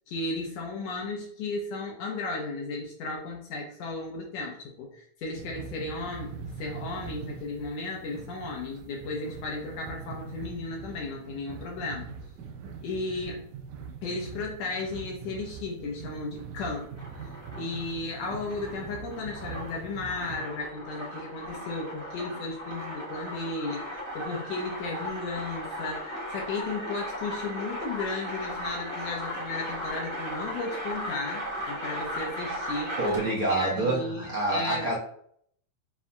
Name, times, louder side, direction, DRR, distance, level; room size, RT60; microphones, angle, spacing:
voice 1, 0.1-12.1 12.8-13.5 14.0-16.9 17.6-33.0 33.5-35.0, left 3 dB, 75° left, -1 dB, 1.7 m, -35 dB
sound 1, 5.4-20.4, right 6 dB, 85° right, 2.1 m, -42 dB
sound 2, 16.8-33.5, equal, 20° left, 0.8 m, -37 dB
voice 2, 33.0-35.0, right 2 dB, 55° right, -6 dB, 1.7 m, -27 dB
7.1 x 2.8 x 2.2 m, 0.64 s
omnidirectional pair, 3.4 m